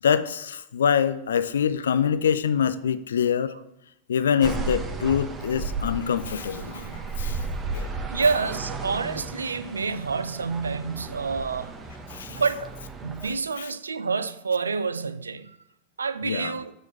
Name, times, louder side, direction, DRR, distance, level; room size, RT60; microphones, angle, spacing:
voice 1, 0.0-3.5 4.1-6.9 7.2-7.4 7.7-8.0 12.1-12.4 13.6-13.7 16.2-16.6, left 7 dB, 65° left, 0.5 m, -25 dB
sound 1, 4.4-13.3, right 3 dB, 20° right, 1.1 m, -34 dB
sound 2, 5.6-8.5, right 2 dB, 90° left, 1.6 m, -49 dB
voice 2, 8.1-11.7 12.3-12.8 13.0-15.6 16.0-16.7, right 4 dB, 75° right, 0.4 m, -28 dB
8.1 x 4.4 x 7.0 m
figure-of-eight pair, 90°, 0 cm